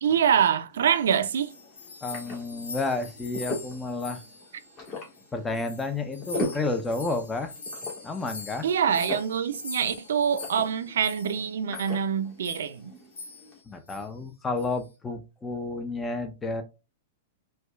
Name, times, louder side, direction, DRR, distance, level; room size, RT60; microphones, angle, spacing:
voice 1, 0.0-1.5 8.6-12.9, right 8 dB, 80° right, 0.5 m, -25 dB
sound 1, 0.7-13.6, left 2 dB, 35° left, 1.7 m, -40 dB
sound 2, 1.0-5.2 5.5-11.4 11.7-12.0 12.4-12.8 13.1-13.6 13.9-14.1 14.6-14.9, left 3 dB, 85° left, 0.9 m, -43 dB
voice 2, 2.0-4.2 5.3-7.5 8.0-8.7 13.7-16.6, left 3 dB, 15° left, 0.6 m, -31 dB
4.4 x 2.3 x 2.3 m
hypercardioid pair, 135°, 0 cm